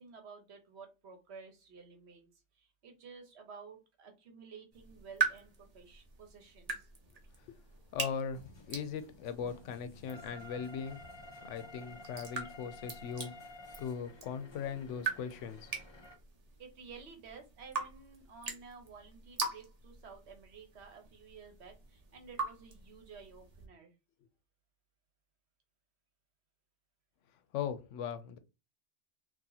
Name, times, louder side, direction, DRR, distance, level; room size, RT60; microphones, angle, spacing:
voice 1, 0.0-2.3 2.6-6.9 16.6-23.9, right 5 dB, 65° right, 1.1 m, -53 dB
sound 1, 4.7-23.7, right 4 dB, 40° right, 0.7 m, -42 dB
voice 2, 7.9-11.1 11.4-13.3 13.8-15.7 27.5-28.4, left 7 dB, 85° left, 0.9 m, -39 dB
sound 2, 8.3-16.1, left 2 dB, 35° left, 0.4 m, -53 dB
2.8 x 2.6 x 3.8 m
omnidirectional pair, 1.2 m